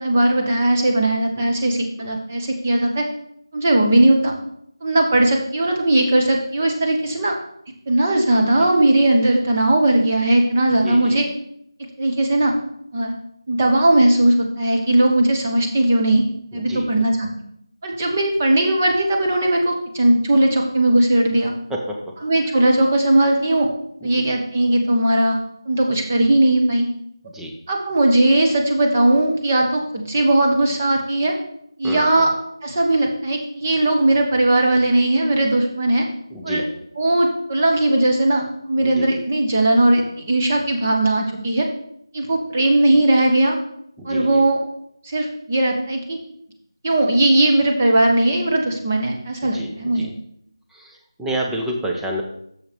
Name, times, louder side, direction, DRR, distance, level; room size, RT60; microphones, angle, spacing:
voice 1, 0.0-3.1 3.5-4.3 4.8-7.3 7.9-11.3 12.0-12.5 12.9-13.1 13.5-16.2 16.5-17.3 17.8-21.5 22.2-23.7 24.0-25.4 25.7-26.8 27.7-31.3 31.8-32.3 32.6-36.1 36.4-36.6 36.9-41.7 42.1-43.6 44.0-44.6 45.0-46.2 46.8-50.1, right 1 dB, 25° right, 1 dB, 1.0 m, -18 dB
voice 2, 10.7-11.2 16.5-16.9 21.7-22.1 22.5-22.6 24.0-24.3 27.2-27.5 31.8-32.3 36.3-36.7 38.8-39.1 44.0-44.4 49.4-50.1 50.7-52.2, equal, ahead, -1 dB, 0.4 m, -30 dB
6.6 x 5.7 x 5.1 m, 0.72 s
figure-of-eight pair, 170°, 3 cm